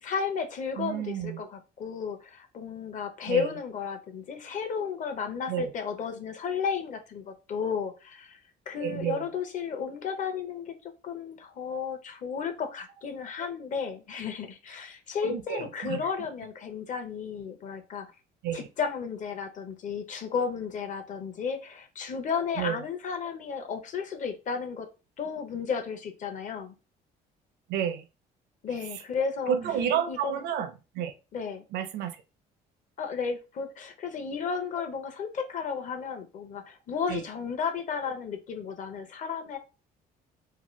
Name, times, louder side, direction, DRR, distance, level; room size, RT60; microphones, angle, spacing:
voice 1, 0.0-8.4 8.7-18.1 18.5-24.9 25.2-26.8 28.6-29.6 30.1-30.3 31.3-31.6 33.0-39.6, left 6 dB, 50° left, 0.7 m, -33 dB
voice 2, 0.8-1.5 3.3-3.5 5.5-5.7 8.8-9.3 15.2-16.1 18.4-18.7 22.6-22.8 27.7-28.0 29.5-31.1 31.7-32.2 37.1-37.2, right 9 dB, 80° right, 0.6 m, -30 dB
2.8 x 2.2 x 3.1 m
cardioid pair, 110°, 17 cm